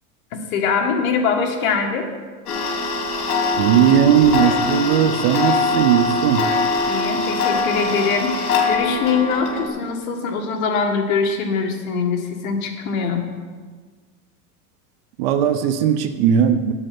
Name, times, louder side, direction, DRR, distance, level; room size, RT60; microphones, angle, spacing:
voice 1, 0.3-2.1 6.9-13.2, left 5 dB, 65° left, 3 dB, 1.7 m, -22 dB
Tick-tock, 2.5-9.7, left 3 dB, 80° left, 2.8 m, -22 dB
voice 2, 3.6-6.5 15.2-16.7, right 9 dB, 40° right, 10 dB, 0.6 m, -17 dB
7.9 x 7.5 x 7.6 m, 1.5 s
supercardioid pair, 160°, 45 cm